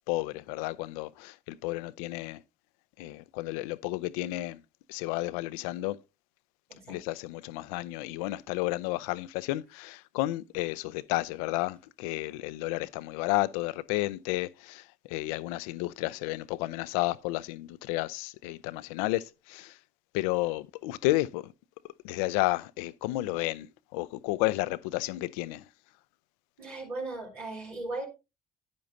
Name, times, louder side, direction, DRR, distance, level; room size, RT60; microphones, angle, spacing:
voice 1, 0.1-2.4 3.0-4.6 4.9-6.0 6.9-19.8 20.1-21.5 22.0-23.7 23.9-25.6, left 18 dB, 75° left, 0.4 m, -32 dB
voice 2, 26.6-28.1, right 2 dB, 85° right, 2.5 m, -37 dB
10.5 x 9.4 x 2.6 m
hypercardioid pair, 50°, 18 cm